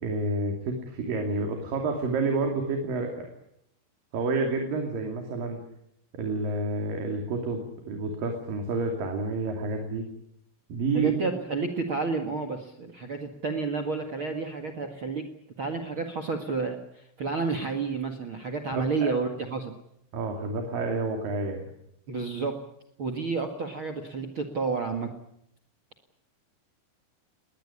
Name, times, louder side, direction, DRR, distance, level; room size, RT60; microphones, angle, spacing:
voice 1, 0.0-3.3 4.1-5.6 6.1-10.1 10.7-11.1 18.7-19.1 20.1-21.6, right 3 dB, 50° right, 3 dB, 3.9 m, -29 dB
voice 2, 10.9-15.3 15.6-19.7 22.1-22.6 23.0-25.1, right 4 dB, 75° right, 8 dB, 1.1 m, -30 dB
21.0 x 20.0 x 10.0 m, 0.77 s
omnidirectional pair, 5.7 m